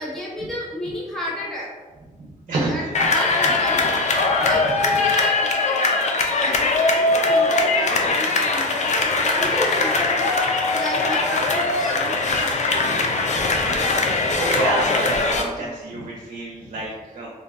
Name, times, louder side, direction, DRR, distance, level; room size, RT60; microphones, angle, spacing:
voice 1, 0.0-1.7 2.7-2.8 3.1-5.7 6.3-13.7 15.6-15.7, left 1 dB, ahead, -6 dB, 0.8 m, -32 dB
voice 2, 2.2-3.1 4.4-4.7 13.4-13.8 14.2-17.3, right 2 dB, 60° right, -4 dB, 0.7 m, -29 dB
sound 1, 2.9-15.4, left 3 dB, 55° left, 0.4 m, -21 dB
2.6 x 2.2 x 3.4 m, 1.3 s
cardioid pair, 80°, 14 cm